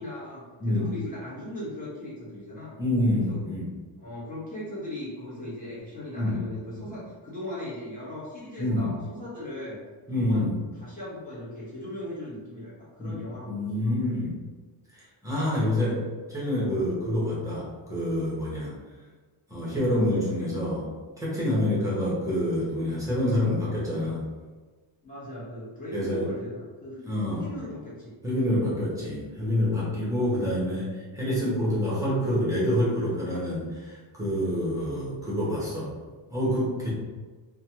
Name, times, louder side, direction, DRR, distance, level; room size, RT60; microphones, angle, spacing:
voice 1, 0.0-2.7 3.3-3.4 4.0-9.8 10.1-10.5 10.8-13.9 25.0-28.1 30.2-30.3, left 1 dB, 20° left, -9 dB, 1.1 m, -38 dB
voice 2, 2.8-3.6 6.1-6.4 6.7-7.0 8.6-8.9 10.1-10.6 13.0-14.3 14.9-16.0 16.3-18.7 19.5-20.9 21.2-24.2 25.9-26.2 27.0-27.5 28.2-35.9 36.3-36.9, left 1 dB, 5° right, -8 dB, 0.8 m, -27 dB
3.1 x 2.2 x 2.8 m, 1.4 s
cardioid pair, 165°, 46 cm